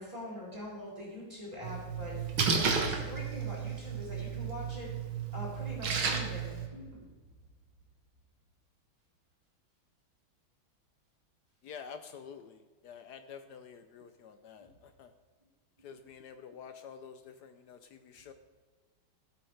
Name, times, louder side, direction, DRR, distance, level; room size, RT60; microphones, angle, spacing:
voice 1, 0.0-4.9 5.3-7.1, left 1 dB, 15° right, -7 dB, 3.9 m, -43 dB
Splash splatter, 1.6-6.7, right 6 dB, 80° right, 2.1 m, -33 dB
voice 2, 11.6-15.1 15.8-18.3, left 7 dB, 70° left, 9 dB, 1.0 m, -49 dB
16.0 x 8.6 x 3.3 m, 1.4 s
omnidirectional pair, 2.2 m